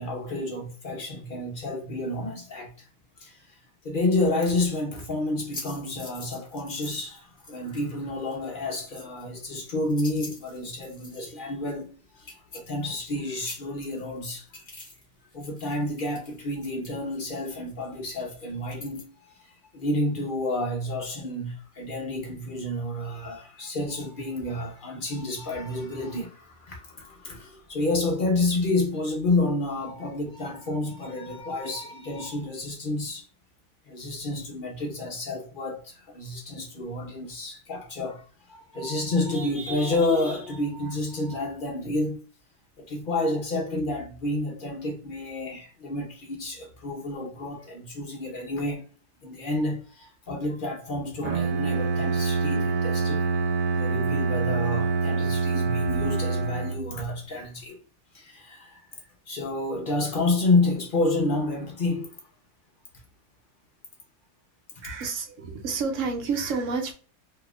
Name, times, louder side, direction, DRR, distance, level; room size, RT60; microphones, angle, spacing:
voice 1, 0.0-2.9 3.2-3.6 3.8-14.5 15.3-19.0 19.4-33.2 33.9-42.2 42.8-48.9 49.2-53.3 53.7-57.8 58.1-58.8 59.3-62.1, left 2 dB, 55° left, 0.6 m, -29 dB
sound 1, 5.5-7.1 7.4-8.0 8.3-11.5 11.8-11.9 12.2-13.2 13.4-15.1 15.3-19.0, left 2 dB, 30° left, 1.4 m, -45 dB
Bowed string instrument, 51.2-57.1, right 4 dB, 85° right, 1.2 m, -26 dB
voice 2, 64.8-66.9, right 4 dB, 65° right, 0.8 m, -29 dB
2.8 x 2.4 x 3.3 m
omnidirectional pair, 1.8 m